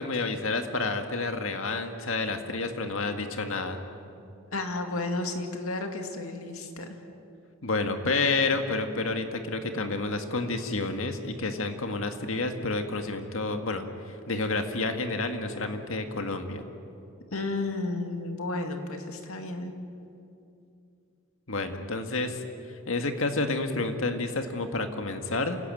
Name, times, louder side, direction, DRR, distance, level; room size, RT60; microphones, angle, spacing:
voice 1, 0.0-3.8 7.6-16.7 21.5-22.4 22.9-25.6, left 3 dB, 70° left, 6 dB, 1.8 m, -29 dB
voice 2, 4.5-7.0 17.3-19.7, left 2 dB, 85° left, 5 dB, 2.4 m, -32 dB
28.0 x 16.5 x 9.1 m, 2.6 s
head